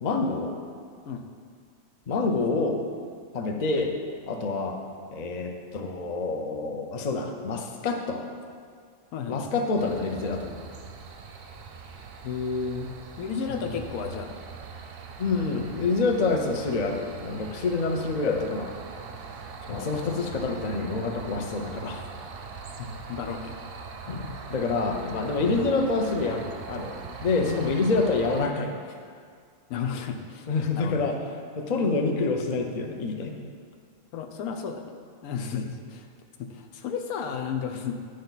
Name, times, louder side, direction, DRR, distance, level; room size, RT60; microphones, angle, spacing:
voice 1, 0.0-0.5 2.1-2.8 3.3-3.9 4.3-4.8 5.1-8.2 9.3-10.5 15.2-18.7 19.7-22.1 24.1-26.4 26.7-26.9 27.2-28.7 30.5-31.2 31.6-33.3 35.5-35.6, left 3 dB, 40° left, 3 dB, 0.6 m, -27 dB
voice 2, 9.1-9.4 12.2-14.4 19.7-20.3 22.8-23.6 25.4-25.7 27.4-27.8 29.7-30.5 30.7-31.1 34.1-34.9 35.2-36.1 36.4-38.0, left 6 dB, 85° left, 4 dB, 1.2 m, -33 dB
sound 1, 9.8-28.5, right 5 dB, 55° right, 0.7 m, -41 dB
10.0 x 6.6 x 4.0 m, 2.1 s
omnidirectional pair, 1.5 m